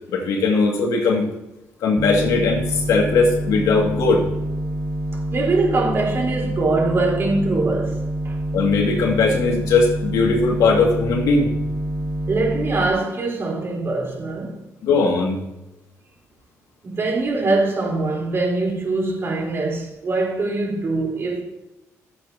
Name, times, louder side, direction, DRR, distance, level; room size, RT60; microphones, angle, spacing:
voice 1, 0.1-1.4 1.8-4.3 8.5-11.5 14.8-15.4, left 4 dB, 85° left, 2.1 m, -19 dB
sound 1, 2.0-12.9, right 1 dB, 10° right, 1.0 m, -27 dB
voice 2, 5.1-8.4 12.3-14.6 16.8-21.4, right 3 dB, 45° right, 3.9 m, -23 dB
15.5 x 8.0 x 2.8 m
cardioid pair, 90°, 6 cm